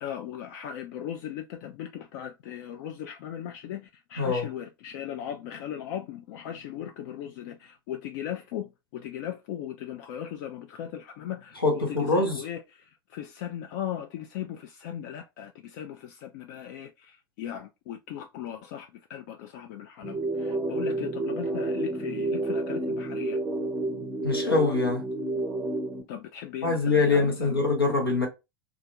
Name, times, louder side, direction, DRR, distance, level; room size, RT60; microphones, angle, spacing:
voice 1, 0.0-23.4 26.1-27.6, left 10 dB, 55° left, 0.4 m, -38 dB
voice 2, 4.2-4.5 11.6-12.4 24.2-25.0 26.6-28.3, left 3 dB, 90° left, 1.1 m, -24 dB
sound 1, 20.0-26.0, right 2 dB, 15° right, 0.6 m, -30 dB
2.4 x 2.4 x 2.9 m
figure-of-eight pair, 85°, 12 cm